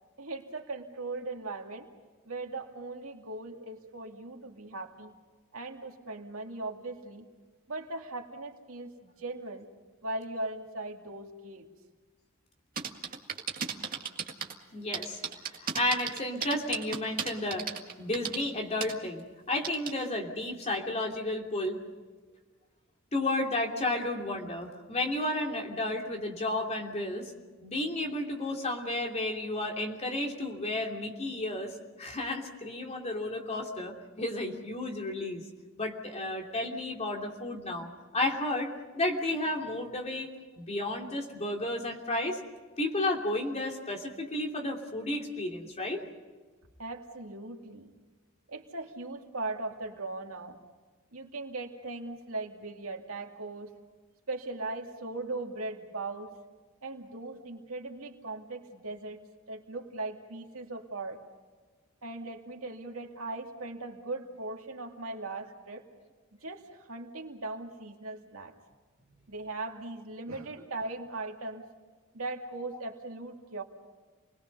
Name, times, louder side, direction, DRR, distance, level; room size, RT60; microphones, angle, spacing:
voice 1, 0.2-1.9 2.2-5.1 5.5-7.3 7.7-9.6 10.0-11.7 46.8-47.9 48.5-50.6 51.1-53.7 54.3-56.4 56.8-59.2 59.5-61.2 62.0-65.8 66.4-68.5 69.3-71.6 72.1-73.6, right 2 dB, 80° right, 2 dB, 2.5 m, -39 dB
sound 1, 12.8-14.5 14.9-18.4 18.8-18.9 19.6-19.9, right 7 dB, 45° right, 2.0 m, -34 dB
voice 2, 14.7-15.2 15.6-17.7 18.0-21.8 23.1-27.3 27.6-35.4 35.8-40.3 40.6-42.4 42.8-46.0, left 1 dB, 30° left, 1 dB, 2.9 m, -32 dB
29.0 x 21.0 x 5.5 m, 1.4 s
head